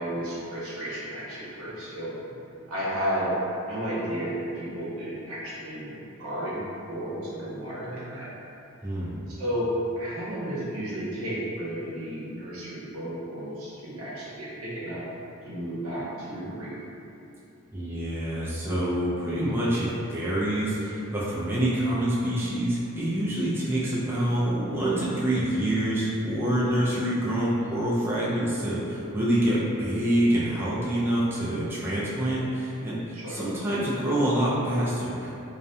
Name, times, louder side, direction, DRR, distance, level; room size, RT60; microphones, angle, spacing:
voice 1, 0.0-2.1 2.7-3.3 3.7-8.3 9.3-15.0 15.4-16.7 33.1-33.4, equal, 80° right, -8 dB, 0.7 m, -33 dB
voice 2, 8.8-9.1 17.7-35.4, right 1 dB, 10° right, -8 dB, 0.3 m, -26 dB
2.3 x 2.1 x 2.7 m, 2.8 s
head